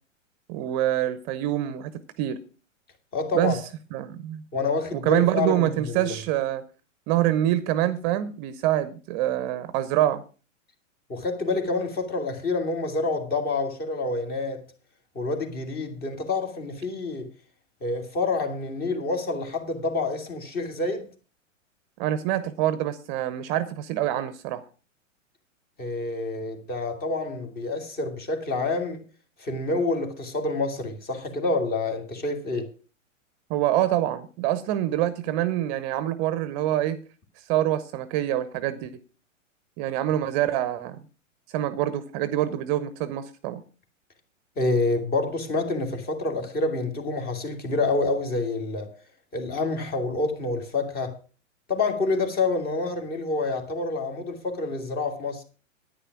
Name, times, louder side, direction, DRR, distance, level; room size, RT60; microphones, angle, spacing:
voice 1, 0.5-1.9 2.2-2.4 3.3-3.6 3.9-4.4 4.9-6.6 7.1-10.2 22.0-24.6 33.5-37.0 37.4-38.9 39.8-41.0 41.5-43.6, right 13 dB, 35° right, 0.8 m, -25 dB
voice 2, 3.1-3.6 4.5-6.1 11.1-14.6 15.1-17.3 17.8-21.1 25.8-29.0 29.4-32.7 44.6-48.9 49.3-51.2 51.7-55.4, left 3 dB, 25° left, 2.3 m, -27 dB
10.0 x 9.5 x 5.9 m
hypercardioid pair, 115°, 39 cm